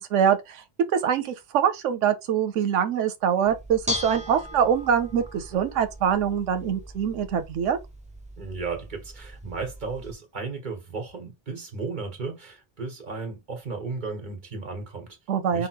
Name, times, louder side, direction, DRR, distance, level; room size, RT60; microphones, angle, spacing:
voice 1, 0.1-0.6 0.9-7.8 15.3-15.7, right 8 dB, 90° right, 1.0 m, -24 dB
Bell / Dishes pots and pans, 3.5-10.1, left 2 dB, 10° right, 0.6 m, -38 dB
voice 2, 8.4-15.2 15.5-15.7, right 4 dB, 40° right, 1.5 m, -34 dB
5.1 x 2.2 x 4.5 m
omnidirectional pair, 1.2 m